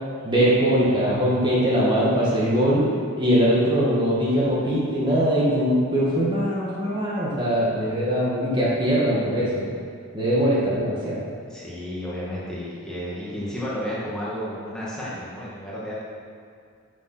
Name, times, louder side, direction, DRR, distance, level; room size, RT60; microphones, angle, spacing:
voice 1, 0.2-2.8 3.2-9.7 10.1-11.2, equal, 20° right, -7 dB, 1.8 m, -21 dB
voice 2, 11.5-16.0, equal, 5° left, -8 dB, 1.9 m, -32 dB
9.0 x 6.6 x 6.1 m, 2.3 s
head